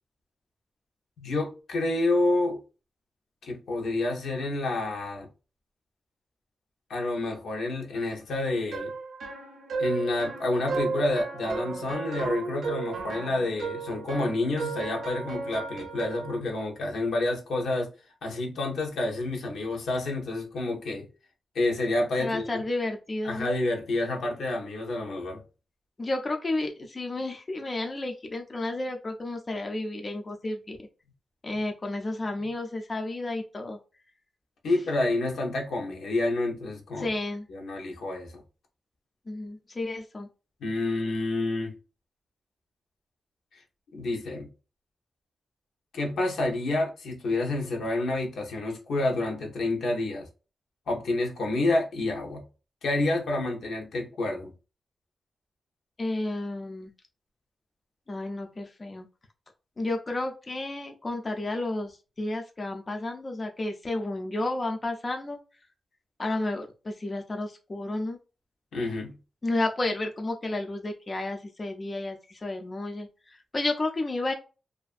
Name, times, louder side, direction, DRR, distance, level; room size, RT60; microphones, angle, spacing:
voice 1, 1.2-2.6 3.4-5.3 6.9-8.9 9.8-17.9 18.2-21.1 21.5-22.6 23.2-25.4 34.6-37.1 37.5-38.4 40.6-41.7 43.5-43.6 43.9-44.5 45.9-50.3 50.9-52.4 52.8-54.5 68.7-69.2, left 2 dB, 85° left, 0.7 m, -29 dB
sound 1, 8.7-16.4, right 4 dB, 75° right, 0.5 m, -34 dB
voice 2, 22.2-23.5 26.0-30.8 31.4-33.8 37.0-37.5 39.3-40.3 56.0-56.9 58.1-59.1 59.8-65.4 66.2-68.2 69.4-74.3, left 2 dB, 25° left, 0.3 m, -32 dB
2.5 x 2.4 x 2.4 m
wide cardioid pair, 155°, 0 cm